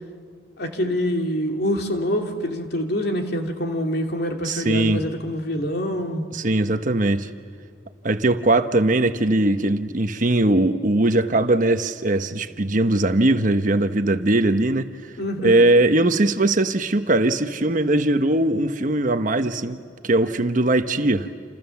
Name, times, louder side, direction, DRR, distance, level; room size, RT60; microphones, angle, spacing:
voice 1, 0.6-6.2 15.2-15.7, equal, 60° left, 3 dB, 2.8 m, -25 dB
voice 2, 4.4-5.0 6.3-7.3 8.0-14.9 15.4-19.8 20.0-21.3, right 2 dB, 45° right, 8 dB, 1.1 m, -20 dB
29.0 x 28.5 x 7.2 m, 2.2 s
head